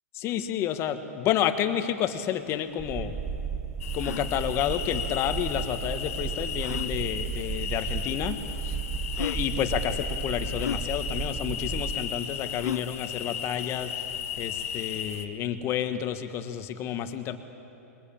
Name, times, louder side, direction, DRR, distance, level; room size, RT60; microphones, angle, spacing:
voice 1, 0.1-3.1 3.9-8.4 8.6-8.8 9.2-13.9 14.4-17.4, left 10 dB, 30° left, 9 dB, 1.5 m, -30 dB
sound 1, 2.4-2.5 2.7-2.8 3.3-3.4 3.9-4.3 5.6-5.7 6.6-6.9 7.9-8.0 8.7-8.8 9.1-9.5 10.6-10.8 12.6-12.9, left 8 dB, 90° left, 0.8 m, -34 dB
sound 2, 2.8-11.9, right 6 dB, 10° right, 1.2 m, -34 dB
sound 3, 3.8-15.3, left 8 dB, 70° left, 1.8 m, -36 dB
22.5 x 21.5 x 8.7 m, 2.9 s
hypercardioid pair, 130°, 8 cm